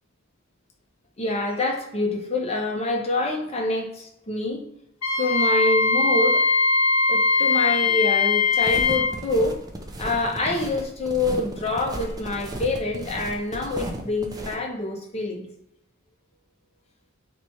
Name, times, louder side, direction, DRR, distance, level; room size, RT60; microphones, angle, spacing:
voice 1, 1.2-4.6 5.2-6.4 7.1-9.6 10.0-15.4, left 2 dB, 30° left, 1 dB, 0.7 m, -26 dB
Wind instrument woodwind instrument, 5.0-9.1, left 4 dB, 85° left, 0.7 m, -20 dB
sound 1, 8.6-14.6, right 1 dB, 20° right, 0.3 m, -35 dB
3.0 x 2.2 x 4.0 m, 0.82 s
head